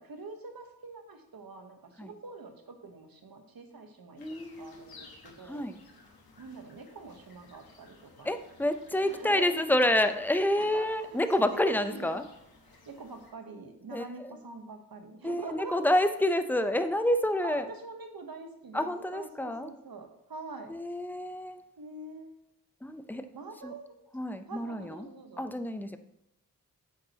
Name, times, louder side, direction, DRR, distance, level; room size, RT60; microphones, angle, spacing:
voice 1, 0.0-4.2 4.5-5.7 6.4-8.3 9.1-9.5 10.6-12.1 12.9-16.0 17.4-20.7 21.8-22.3 23.3-24.0 24.5-25.5, right 3 dB, 70° right, 6 dB, 1.1 m, -45 dB
sound 1, 4.2-13.3, left 3 dB, 80° left, 1.2 m, -56 dB
voice 2, 4.2-4.9 5.4-5.8 8.2-12.3 13.9-14.4 15.2-17.7 18.7-19.7 20.7-21.6 22.8-23.3 23.6-23.7 24.1-25.1 25.4-26.0, left 1 dB, 5° left, 9 dB, 0.6 m, -28 dB
8.4 x 6.3 x 2.9 m, 0.81 s
cardioid pair, 45°, 37 cm